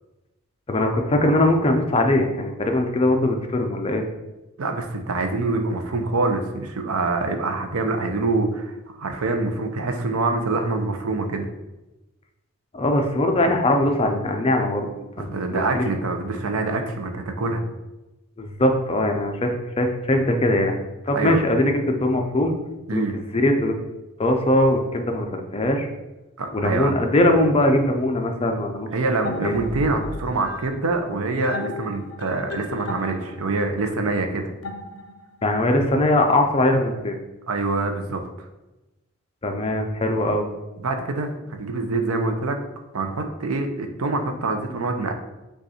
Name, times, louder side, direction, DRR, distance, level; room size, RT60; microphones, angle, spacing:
voice 1, 0.7-4.0 12.7-14.9 15.2-15.9 18.4-20.8 21.1-22.5 22.9-23.8 24.2-25.9 26.5-28.9 29.3-29.5 35.4-37.2 39.4-40.5, left 1 dB, 25° left, 4 dB, 0.5 m, -21 dB
voice 2, 4.6-11.5 15.2-17.6 21.1-21.4 22.9-23.1 26.4-26.9 28.9-34.5 37.5-38.2 40.8-42.6 42.9-45.1, right 3 dB, 85° right, 6 dB, 0.6 m, -25 dB
sound 1, 29.2-35.4, left 2 dB, 70° left, 0.6 m, -35 dB
5.2 x 2.4 x 4.2 m, 1.0 s
head